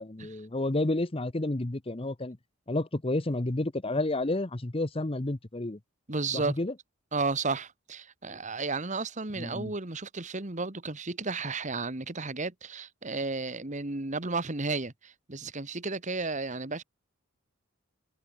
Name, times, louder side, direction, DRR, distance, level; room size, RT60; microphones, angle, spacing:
voice 1, 0.0-2.4 2.7-5.8 6.3-6.7 9.4-9.7, left 2 dB, 25° left, 0.9 m, -30 dB
voice 2, 6.1-6.6 7.1-16.8, right 3 dB, 35° right, 1.6 m, -33 dB
head